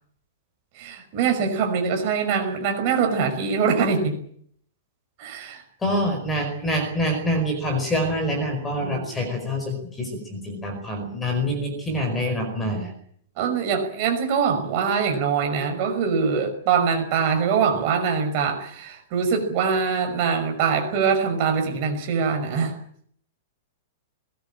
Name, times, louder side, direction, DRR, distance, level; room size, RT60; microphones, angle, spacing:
voice 1, 0.7-4.2 5.2-5.6 8.8-9.3 13.4-22.8, right 6 dB, 30° right, 4 dB, 5.8 m, -23 dB
voice 2, 5.8-12.9, equal, 10° left, 4 dB, 4.9 m, -26 dB
22.0 x 20.0 x 8.8 m, 0.64 s
supercardioid pair, 180°, 0 cm